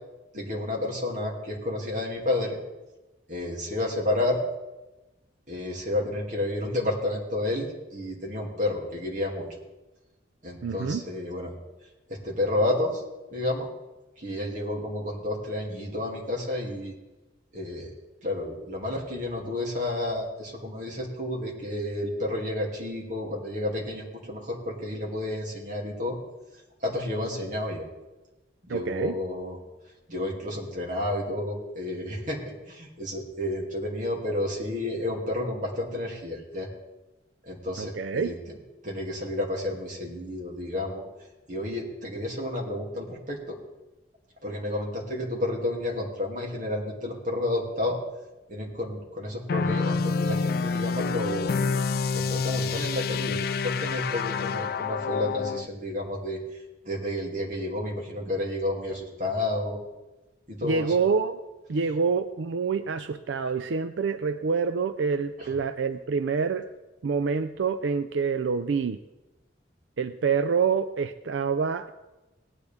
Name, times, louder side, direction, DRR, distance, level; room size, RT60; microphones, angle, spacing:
voice 1, 0.3-2.6 3.3-4.4 5.5-9.5 10.4-11.5 12.1-13.0 13.3-13.7 14.2-16.9 17.5-17.9 18.2-26.2 26.8-27.9 28.6-29.6 30.1-36.7 37.4-38.3 38.8-41.0 41.5-43.6 44.4-48.0 48.5-51.6 52.1-56.4 56.8-59.8 60.5-60.9 65.4-65.5, left 1 dB, 45° right, -2 dB, 2.7 m, -31 dB
voice 2, 10.6-11.0 28.7-29.2 37.8-38.3 60.6-61.4 61.7-66.7 67.0-69.0 70.0-71.9, right 5 dB, 80° right, 10 dB, 0.4 m, -27 dB
sound 1, 49.5-55.7, left 4 dB, 55° left, 0.3 m, -27 dB
18.5 x 9.8 x 3.5 m, 1.1 s
head